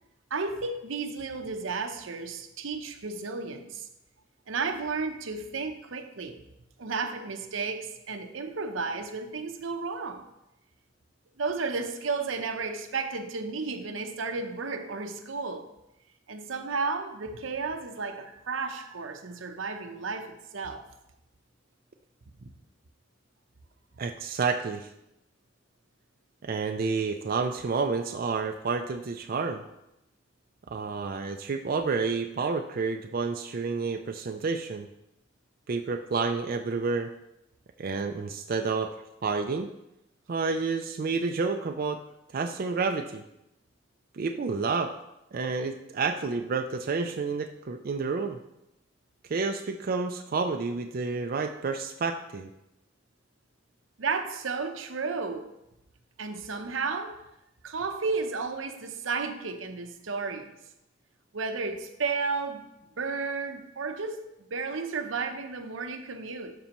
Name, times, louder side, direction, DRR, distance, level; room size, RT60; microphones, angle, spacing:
voice 1, 0.3-3.9 4.5-6.4 6.8-10.3 11.4-15.7 16.3-20.8 22.4-22.5 54.0-55.5 56.2-57.2 57.6-60.6 61.3-62.7 63.0-66.5, right 4 dB, 85° right, 7 dB, 0.8 m, -33 dB
voice 2, 24.0-24.9 26.4-29.6 30.7-34.9 35.7-37.1 37.8-38.9 39.2-39.7 40.3-42.0 42.3-43.2 44.1-44.9 45.3-48.4 49.3-52.5, right 4 dB, 45° right, 5 dB, 0.4 m, -29 dB
12.5 x 5.4 x 3.0 m, 0.87 s
head